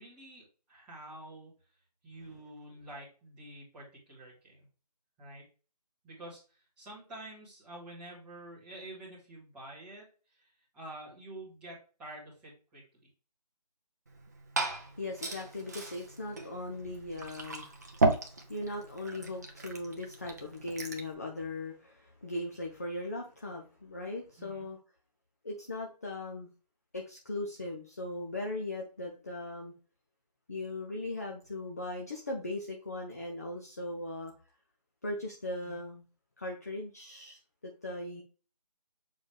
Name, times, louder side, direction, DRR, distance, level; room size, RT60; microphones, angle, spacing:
voice 1, 0.0-1.5 2.0-4.6 5.2-5.5 6.0-10.0 10.3-12.8 24.4-24.7 35.6-35.8, right 1 dB, 5° right, -10 dB, 1.8 m, -48 dB
Glass / Fill (with liquid), 14.1-21.1, right 2 dB, 25° right, 0.8 m, -35 dB
voice 2, 15.0-17.7 18.5-24.8 25.4-26.5 26.9-29.7 30.5-34.3 35.0-36.0 36.4-37.4 37.8-38.2, left 2 dB, 25° left, 0 dB, 0.6 m, -39 dB
7.2 x 4.1 x 3.3 m, 0.35 s
figure-of-eight pair, 170°, 21 cm